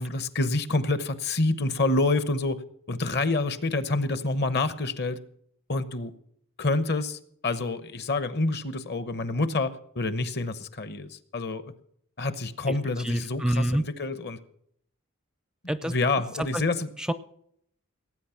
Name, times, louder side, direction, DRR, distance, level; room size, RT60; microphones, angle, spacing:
voice 1, 0.0-2.6 2.9-5.2 5.7-6.1 6.6-11.7 12.2-14.4 15.8-16.9, left 2 dB, 50° left, 13 dB, 1.0 m, -27 dB
voice 2, 13.0-13.8 15.7-15.9 17.1-17.2, right 1 dB, 5° right, 13 dB, 0.4 m, -26 dB
18.5 x 9.0 x 5.8 m, 0.69 s
head